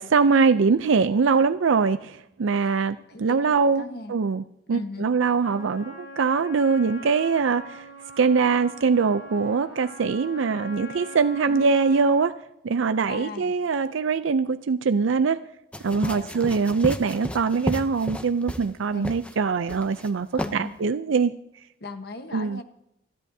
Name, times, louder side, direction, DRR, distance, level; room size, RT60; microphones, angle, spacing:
voice 1, 0.0-7.9 8.2-12.3 12.6-15.4 15.8-20.3 20.5-21.3 22.3-22.6, right 5 dB, 85° right, 11 dB, 0.5 m, -23 dB
voice 2, 2.5-4.1 4.7-5.1 11.5-11.7 13.1-13.5 16.0-16.6 18.9-19.1 20.3-20.7 21.8-22.6, left 2 dB, 55° left, 7 dB, 1.2 m, -39 dB
Trumpet, 5.4-12.3, equal, 80° left, 6.8 m, -42 dB
sound 1, 15.7-18.7 19.0-19.3 19.7-20.1 20.4-20.5, equal, 5° left, 0.6 m, -32 dB
29.0 x 11.0 x 2.7 m, 0.78 s
head